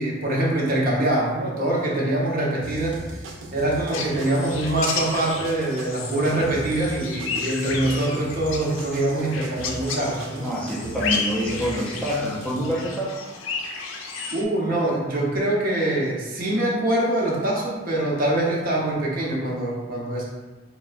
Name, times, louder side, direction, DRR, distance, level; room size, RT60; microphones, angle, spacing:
voice 1, 0.0-3.0 3.5-10.5 14.3-20.2, right 1 dB, 50° right, -3 dB, 0.7 m, -24 dB
sound 1, 2.6-12.7, right 2 dB, 85° right, 0.4 m, -39 dB
sound 2, 3.9-14.4, left 4 dB, 90° left, 0.4 m, -33 dB
voice 2, 10.4-13.2, equal, 5° left, -5 dB, 0.4 m, -26 dB
4.2 x 2.1 x 2.4 m, 1.2 s
head